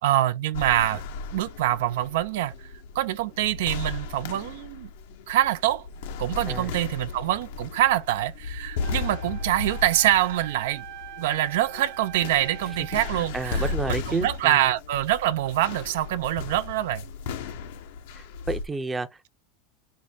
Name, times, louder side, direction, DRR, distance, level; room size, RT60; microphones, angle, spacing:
voice 1, 0.0-1.0 1.3-4.9 5.3-5.9 6.2-10.8 11.2-17.1, right 13 dB, 80° right, 0.4 m, -25 dB
sound 1, 0.5-18.7, left 4 dB, 80° left, 0.7 m, -36 dB
Wind instrument woodwind instrument, 8.8-13.3, right 10 dB, 55° right, 0.8 m, -43 dB
voice 2, 13.1-14.7 18.1-19.3, right 3 dB, 10° right, 0.5 m, -31 dB
4.4 x 2.1 x 3.8 m
supercardioid pair, 150°, 0 cm